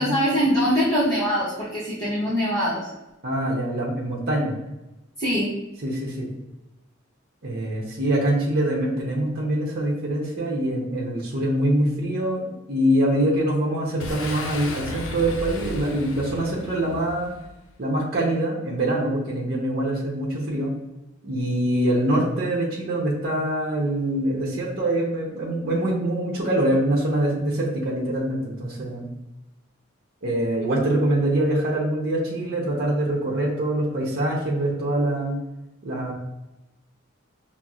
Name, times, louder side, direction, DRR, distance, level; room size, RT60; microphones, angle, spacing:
voice 1, 0.0-2.9 5.2-5.5, equal, 20° left, -10 dB, 0.9 m, -23 dB
voice 2, 3.2-4.5 5.8-6.3 7.4-17.3 17.8-20.7 21.2-29.1 30.2-35.4 35.8-36.1, right 1 dB, 50° right, -3 dB, 0.8 m, -24 dB
Boom, 14.0-17.6, left 2 dB, 75° left, 0.5 m, -34 dB
5.7 x 2.0 x 2.4 m, 0.97 s
head